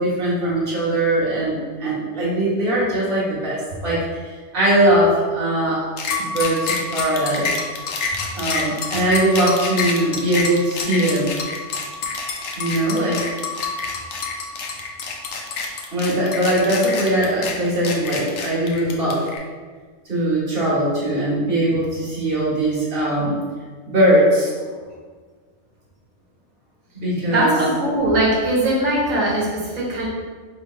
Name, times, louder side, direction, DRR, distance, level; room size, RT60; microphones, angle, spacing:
voice 1, 0.0-4.0 4.5-5.9 6.2-7.5 8.3-11.4 12.6-13.3 15.9-19.3 20.0-23.4 23.8-24.7 26.9-27.5, right 1 dB, 45° right, -8 dB, 1.6 m, -20 dB
sound 1, 6.0-19.4, left 4 dB, 85° left, 1.0 m, -27 dB
voice 2, 27.3-30.1, right 1 dB, 85° right, -5 dB, 1.3 m, -20 dB
3.3 x 3.2 x 4.3 m, 1.5 s
omnidirectional pair, 1.3 m